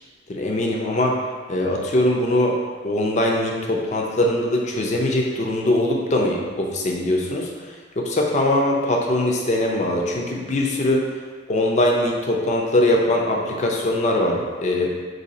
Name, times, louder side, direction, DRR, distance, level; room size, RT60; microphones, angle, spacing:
voice 1, 0.3-1.2 1.5-2.6 2.8-7.5 8.0-11.0 11.5-14.9, left 1 dB, 40° left, 0 dB, 0.5 m, -21 dB
2.8 x 2.7 x 4.0 m, 1.6 s
head